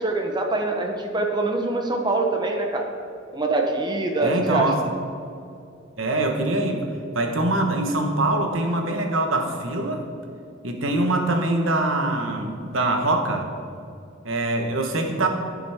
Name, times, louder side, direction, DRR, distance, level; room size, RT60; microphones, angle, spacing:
voice 1, 0.0-2.9 3.3-4.7, right 2 dB, 20° right, 3 dB, 0.8 m, -24 dB
voice 2, 4.2-4.8 6.0-6.9 7.1-10.1 10.6-13.5 14.2-15.3, right 2 dB, 80° right, 3 dB, 1.2 m, -23 dB
15.5 x 6.2 x 3.6 m, 2.5 s
head